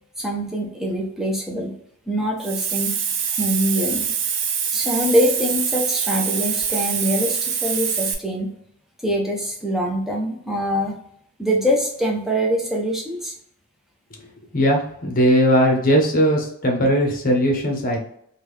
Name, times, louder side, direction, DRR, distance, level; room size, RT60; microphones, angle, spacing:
voice 1, 0.2-1.8 2.1-2.9 3.4-4.1 4.7-8.5 9.0-11.0 11.4-13.3, equal, ahead, -1 dB, 0.6 m, -23 dB
Hiss, 2.4-8.1, right 7 dB, 55° right, 0.5 m, -24 dB
voice 2, 14.5-18.0, equal, 40° left, 1 dB, 0.8 m, -18 dB
3.6 x 2.3 x 3.1 m, 0.70 s
head